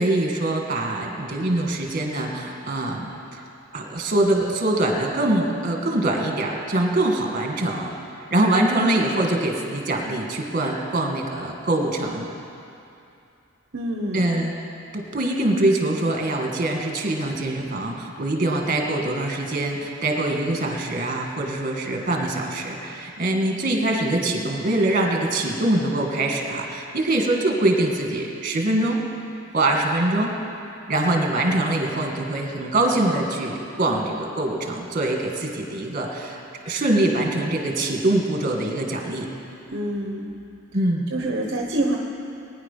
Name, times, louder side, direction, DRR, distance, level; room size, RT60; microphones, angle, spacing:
voice 1, 0.0-3.1 3.7-7.9 8.3-12.3 14.1-14.5 14.9-29.0 29.5-30.3 30.9-36.4 36.7-39.3 40.7-41.1, right 1 dB, 40° right, 1 dB, 2.2 m, -23 dB
voice 2, 13.7-14.2 39.7-40.3 41.1-42.0, right 1 dB, 60° right, 0 dB, 1.1 m, -26 dB
21.0 x 10.0 x 5.8 m, 2.6 s
head